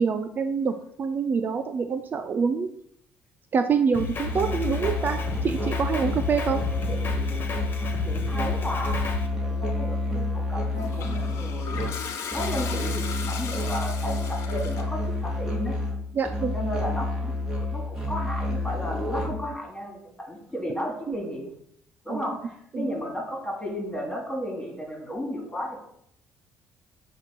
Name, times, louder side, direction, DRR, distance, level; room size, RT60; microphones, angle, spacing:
voice 1, 0.0-2.7 3.5-6.6 16.1-16.5 21.1-21.2 22.1-22.3 22.7-22.9, right 5 dB, 40° right, 9 dB, 0.5 m, -26 dB
Drum kit, 3.9-9.3, left 5 dB, 45° left, 1.4 m, -34 dB
Musical instrument, 4.3-19.6, left 2 dB, 10° right, 2.3 m, -29 dB
voice 2, 6.9-7.3 8.0-9.1 9.4-12.0 12.3-15.8 16.5-21.5 22.0-25.8, equal, 10° left, 0 dB, 2.9 m, -34 dB
Toilet flush, 10.7-15.0, left 6 dB, 70° left, 1.1 m, -37 dB
7.7 x 3.1 x 6.0 m, 0.70 s
supercardioid pair, 90°, 5 cm